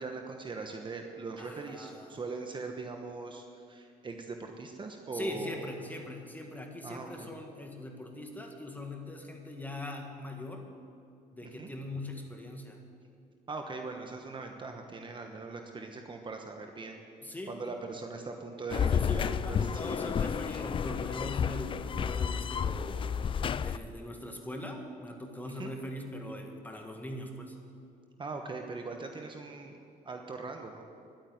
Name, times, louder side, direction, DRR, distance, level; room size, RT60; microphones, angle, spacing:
voice 1, 0.0-5.7 6.8-7.3 11.4-11.7 13.5-17.0 17.5-19.7 25.4-25.7 28.2-29.8 30.0-30.9, right 4 dB, 30° right, 4 dB, 1.2 m, -41 dB
voice 2, 1.4-2.2 5.1-10.7 11.3-12.8 17.2-17.8 18.7-23.0 23.6-27.6, left 1 dB, 10° left, 2 dB, 1.9 m, -41 dB
sound 1, 18.7-23.8, left 7 dB, 30° left, 0.4 m, -31 dB
11.5 x 9.0 x 9.6 m, 2.5 s
cardioid pair, 110°, 17 cm